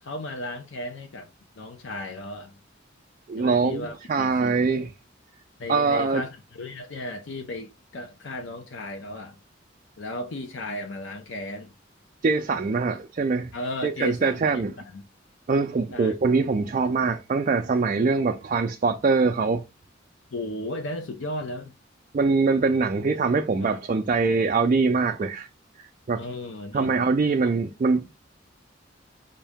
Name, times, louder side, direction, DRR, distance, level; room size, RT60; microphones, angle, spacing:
voice 1, 0.0-1.3 1.6-2.5 3.4-4.5 5.6-9.4 10.0-11.7 13.5-15.0 15.9-16.1 20.3-21.7 23.6-23.8 26.2-26.9, left 1 dB, 70° left, 0.6 m, -35 dB
voice 2, 3.3-4.9 5.7-6.2 12.2-13.5 13.8-14.7 15.5-19.6 22.1-25.5 26.1-26.2 26.7-28.1, right 4 dB, 40° right, 0.3 m, -23 dB
5.1 x 2.7 x 3.5 m
head